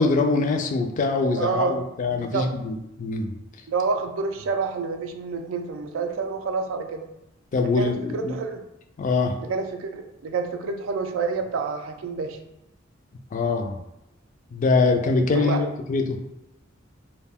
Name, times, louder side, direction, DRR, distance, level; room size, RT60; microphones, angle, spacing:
voice 1, 0.0-3.3 7.5-8.4 9.0-9.3 13.3-13.8 14.5-16.2, left 3 dB, 40° left, 4 dB, 0.3 m, -23 dB
voice 2, 1.3-1.8 2.1-2.5 3.7-7.1 7.6-8.6 9.4-12.4 15.3-15.6, right 4 dB, 85° right, 5 dB, 0.4 m, -28 dB
2.3 x 2.1 x 3.4 m, 0.88 s
head